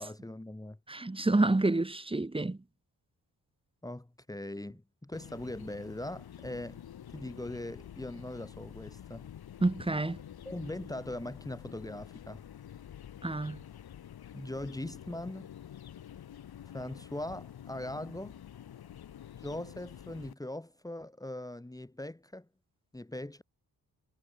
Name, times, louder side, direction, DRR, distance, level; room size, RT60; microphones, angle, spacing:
voice 1, 0.0-0.8 3.8-6.8 7.1-9.3 10.4-12.4 14.3-15.5 16.7-18.4 19.4-22.5 22.9-23.4, left 1 dB, 10° left, 2.8 m, -40 dB
voice 2, 0.9-2.6 9.6-10.2 13.2-13.6, right 2 dB, 15° right, 2.3 m, -28 dB
sound 1, 5.1-20.3, left 10 dB, 70° left, 3.8 m, -48 dB
cardioid pair, 100°, 39 cm